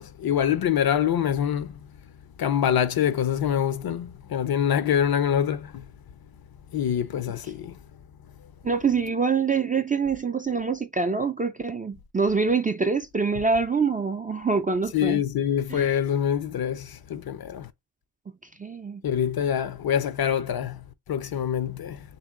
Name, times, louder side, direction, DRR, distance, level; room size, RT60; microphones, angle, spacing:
voice 1, 0.0-1.8 2.4-5.8 6.7-7.8 14.9-17.7 19.0-20.8 21.1-22.0, left 9 dB, 50° left, 0.6 m, -25 dB
voice 2, 8.6-15.2 15.7-16.0 18.6-19.0, right 5 dB, 20° right, 0.3 m, -25 dB
2.8 x 2.7 x 3.6 m
cardioid pair, 55°, 46 cm